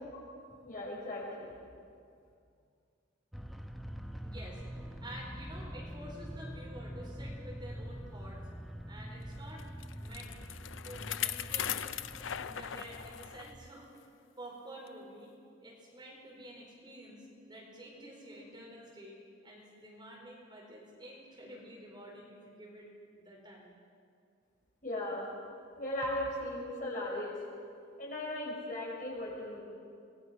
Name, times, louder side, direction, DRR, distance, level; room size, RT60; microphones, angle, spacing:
voice 1, 0.6-1.5 24.8-25.3 25.7-27.4 28.0-29.6, left 1 dB, 45° left, -3 dB, 6.2 m, -37 dB
sound 1, 3.3-13.7, equal, ahead, 1.0 m, -45 dB
voice 2, 4.2-4.6 5.0-8.4 8.9-9.7 10.0-10.3 10.8-11.9 12.4-13.9 14.4-15.3 15.6-23.8, right 1 dB, 25° right, -3 dB, 4.5 m, -49 dB
Bicycle, 9.6-13.5 14.0-14.1 14.9-15.0, left 10 dB, 85° left, 0.6 m, -39 dB
25.0 x 20.0 x 5.8 m, 2.3 s
head